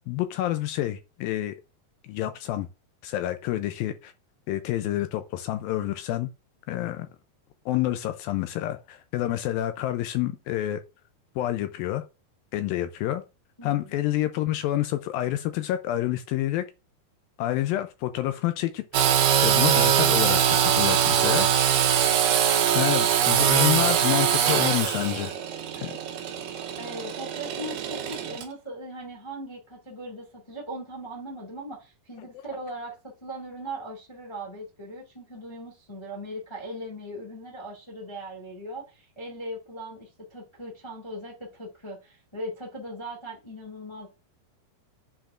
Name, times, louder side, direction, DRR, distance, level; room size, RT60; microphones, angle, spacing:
voice 1, 0.1-1.5 2.0-2.7 3.0-4.1 4.5-6.3 6.7-7.1 7.7-10.8 11.4-12.0 12.5-13.2 13.6-16.7 17.4-18.8 19.4-21.5 22.7-25.3 25.8-25.9, left 14 dB, 80° left, 2.1 m, -28 dB
voice 2, 13.6-14.0 26.8-44.1, right 1 dB, 15° left, 1.0 m, -39 dB
Engine / Sawing, 18.9-28.4, right 9 dB, 70° right, 2.2 m, -22 dB
8.9 x 4.9 x 2.5 m
omnidirectional pair, 4.7 m